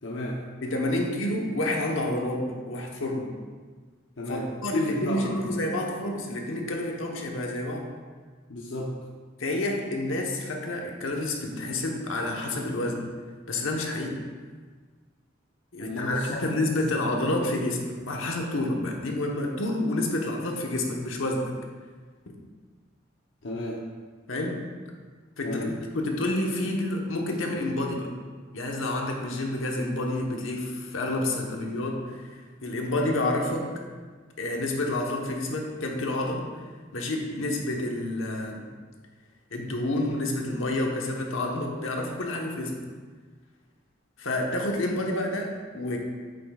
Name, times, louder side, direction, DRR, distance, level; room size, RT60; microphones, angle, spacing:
voice 1, 0.0-0.4 4.2-5.5 8.5-8.9 15.8-16.8 23.4-23.8 25.4-25.8, left 1 dB, 70° left, -3 dB, 0.8 m, -33 dB
voice 2, 0.6-3.3 4.3-7.9 9.4-13.1 13.5-14.2 15.7-21.5 24.3-24.6 25.4-28.1 28.5-33.7 34.4-36.4 36.9-38.7 39.5-42.8 44.2-46.0, left 1 dB, 85° left, 1 dB, 1.1 m, -29 dB
8.6 x 7.6 x 2.4 m, 1.5 s
head